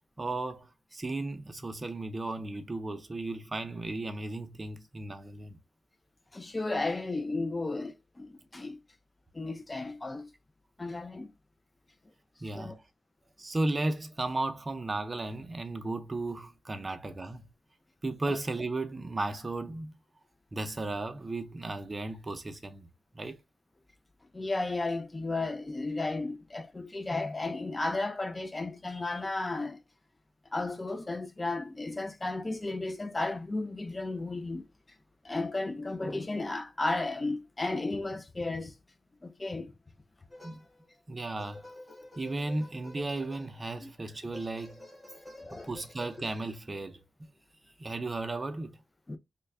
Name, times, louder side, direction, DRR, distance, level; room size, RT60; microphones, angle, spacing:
voice 1, 0.2-5.6 12.4-12.8 13.4-17.5 18.0-20.0 20.5-22.9 23.1-23.4 40.4-40.6 41.1-41.7 42.2-44.8 45.6-47.0 47.8-48.8, right 2 dB, 30° right, 0.6 m, -35 dB
voice 2, 6.3-8.3 8.5-8.8 9.4-10.3 10.8-11.3 12.5-12.8 18.3-18.4 24.3-29.8 30.5-34.6 35.3-38.7 39.4-39.7 43.8-43.9 45.3-45.7 46.2-46.3 49.1-49.2, left 2 dB, 25° left, 0.4 m, -34 dB
sound 1, 40.3-40.9 41.4-43.8 44.3-46.9, left 1 dB, 5° left, 1.3 m, -51 dB
3.2 x 2.3 x 3.4 m
cardioid pair, 80°, 0 cm